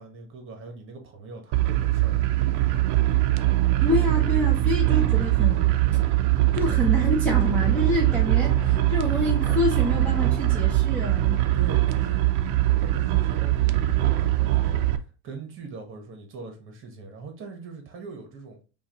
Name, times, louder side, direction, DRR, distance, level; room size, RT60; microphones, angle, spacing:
voice 1, 0.0-2.3 11.5-12.2 12.8-14.8 15.2-18.6, right 4 dB, 30° right, 1.1 m, -41 dB
sound 1, 1.5-15.0, right 15 dB, 60° right, 0.5 m, -22 dB
voice 2, 3.8-5.7 6.5-11.4, left 1 dB, 5° left, 0.6 m, -27 dB
sound 2, 7.4-11.2, left 3 dB, 35° left, 1.8 m, -40 dB
5.6 x 2.5 x 2.9 m
cardioid pair, 155°, 38 cm